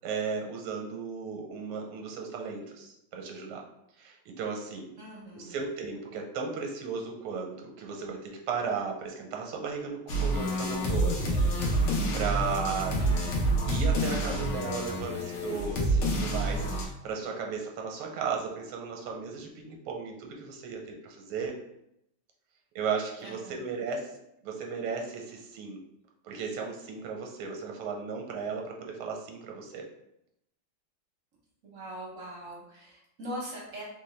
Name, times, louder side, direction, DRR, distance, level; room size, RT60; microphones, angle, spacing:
voice 1, 0.0-3.6 4.0-4.9 5.3-13.0 13.6-21.5 22.7-24.1 24.4-25.8 26.2-29.8, right 5 dB, 85° right, 1 dB, 1.5 m, -35 dB
voice 2, 5.0-5.6 13.0-13.7 23.2-23.7 31.6-33.8, right 1 dB, 60° right, -4 dB, 0.8 m, -42 dB
sound 1, 10.1-16.8, right 1 dB, 80° left, 1.7 m, -28 dB
4.2 x 2.2 x 3.2 m, 0.80 s
omnidirectional pair, 2.4 m